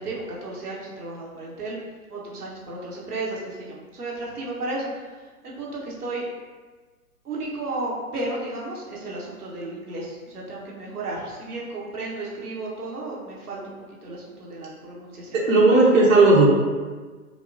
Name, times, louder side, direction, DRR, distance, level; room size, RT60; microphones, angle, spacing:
voice 1, 0.0-1.8 2.1-6.2 7.2-13.7 14.0-15.4, right 2 dB, 85° right, -4 dB, 1.2 m, -33 dB
voice 2, 15.3-16.5, right 2 dB, 60° right, -5 dB, 1.0 m, -15 dB
5.0 x 2.3 x 2.6 m, 1.4 s
hypercardioid pair, 130°, 44 cm